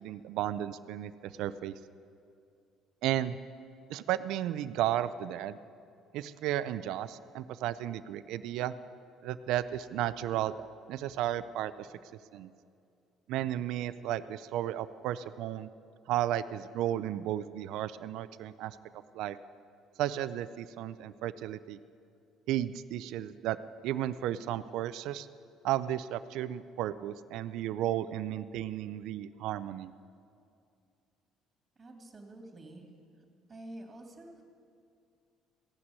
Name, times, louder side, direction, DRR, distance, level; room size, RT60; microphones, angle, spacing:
voice 1, 0.0-1.7 3.0-3.4 3.9-5.6 6.1-8.7 9.2-10.5 10.9-11.9 12.3-12.5 13.3-15.7 16.1-18.8 19.1-19.4 20.0-21.8 22.5-23.6 23.8-25.3 25.6-29.9, right 12 dB, 75° right, 14 dB, 0.4 m, -33 dB
voice 2, 31.8-32.9 33.5-34.4, right 1 dB, 30° right, 3 dB, 2.3 m, -48 dB
15.5 x 6.0 x 9.6 m, 2.4 s
supercardioid pair, 90°, 0 cm